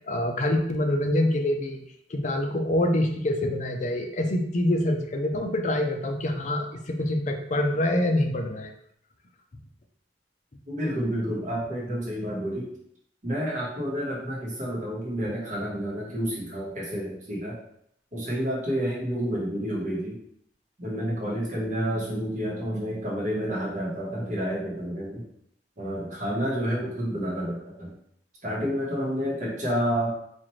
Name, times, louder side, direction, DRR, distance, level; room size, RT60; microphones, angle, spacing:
voice 1, 0.0-1.8 2.1-8.7, left 1 dB, 40° left, 4 dB, 0.5 m, -25 dB
voice 2, 10.7-12.7 13.2-17.6 18.1-20.2 20.8-25.3 25.8-27.9 28.4-30.1, equal, 45° right, -5 dB, 1.1 m, -29 dB
4.2 x 2.4 x 3.1 m, 0.70 s
head